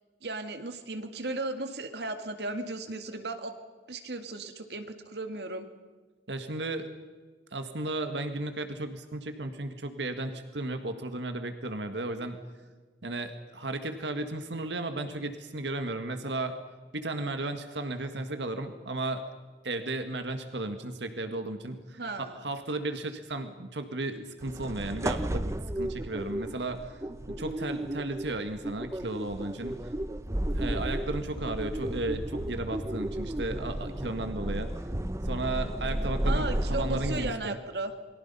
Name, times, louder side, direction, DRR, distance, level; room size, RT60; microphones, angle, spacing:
voice 1, 0.2-3.5 3.9-5.7 22.0-22.4 36.2-37.9, right 2 dB, 70° right, 8 dB, 2.1 m, -35 dB
voice 2, 6.3-6.9 7.5-12.4 13.0-16.6 16.9-19.2 19.6-27.0 27.3-29.7 30.5-34.7 35.2-37.6, right 2 dB, 85° right, 8 dB, 1.8 m, -34 dB
sound 1, 24.4-37.3, right 1 dB, 15° right, 0.7 m, -33 dB
28.0 x 23.0 x 5.6 m, 1.4 s
head